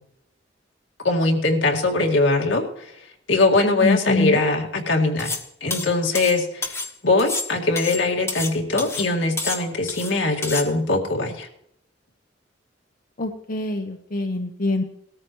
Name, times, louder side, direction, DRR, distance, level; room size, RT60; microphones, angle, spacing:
voice 1, 1.0-2.6 3.3-5.4 5.6-11.5, left 2 dB, 80° left, 1 dB, 2.1 m, -21 dB
voice 2, 3.8-4.4 13.2-14.8, left 2 dB, 50° left, 3 dB, 0.9 m, -24 dB
sound 1, 5.2-5.5 5.7-6.9 7.2-8.5 8.8-9.1 9.4-10.1 10.4-10.7, left 3 dB, 15° left, 1.2 m, -29 dB
18.5 x 13.5 x 3.1 m, 0.72 s
head